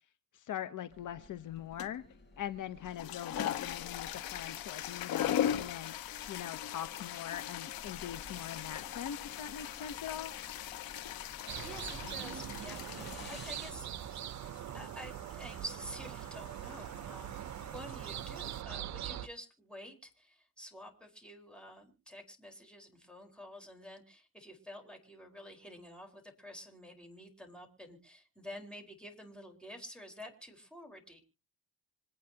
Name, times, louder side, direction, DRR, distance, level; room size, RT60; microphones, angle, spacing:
voice 1, 0.3-2.0 2.4-10.3, left 10 dB, 60° left, 1.0 m, -42 dB
sound 1, 0.9-13.7, left 3 dB, 30° left, 7.9 m, -54 dB
sound 2, 1.8-2.1 2.8-18.6, left 10 dB, 90° left, 1.3 m, -40 dB
sound 3, 11.5-19.3, right 11 dB, 55° right, 0.7 m, -42 dB
voice 2, 11.6-13.9 14.7-31.2, equal, 5° left, 4.5 m, -49 dB
26.5 x 9.2 x 2.9 m
cardioid pair, 90°, 34 cm